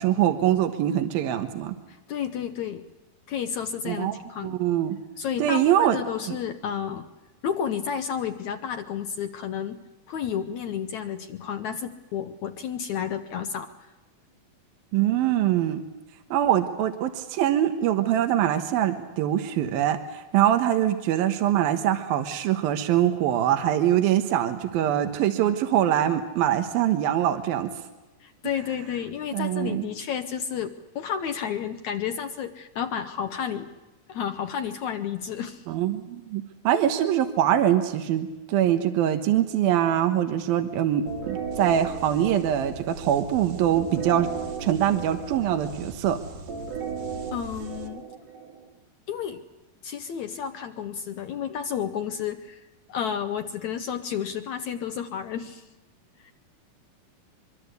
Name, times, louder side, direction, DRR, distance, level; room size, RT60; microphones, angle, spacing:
voice 1, 0.0-1.8 3.9-4.2 4.4-5.0 5.4-6.0 6.3-6.4 14.9-15.8 16.3-27.7 29.3-29.9 35.7-44.3 44.6-46.2, right 11 dB, 80° right, 7 dB, 3.1 m, -23 dB
voice 2, 1.9-2.9 3.3-4.6 5.2-7.1 7.4-9.8 10.1-13.7 28.2-33.7 34.1-35.7 47.3-48.0 49.1-49.4 49.8-55.7 56.2-56.3, left 8 dB, 65° left, 7 dB, 2.0 m, -31 dB
sound 1, 41.1-48.7, right 5 dB, 65° right, 3.5 m, -36 dB
24.5 x 24.0 x 8.2 m, 1.1 s
omnidirectional pair, 4.2 m